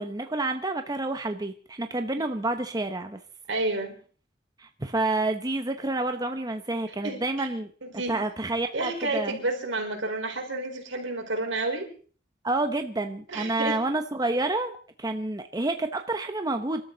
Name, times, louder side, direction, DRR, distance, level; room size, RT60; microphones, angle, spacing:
voice 1, 0.0-3.2 4.6-7.7 8.1-9.4 12.4-16.8, right 2 dB, 20° right, 6 dB, 1.0 m, -29 dB
voice 2, 3.5-4.0 7.0-7.5 7.8-8.2 8.7-11.9 13.3-13.8, right 2 dB, 75° right, 3 dB, 4.6 m, -30 dB
27.0 x 13.0 x 4.0 m, 0.42 s
head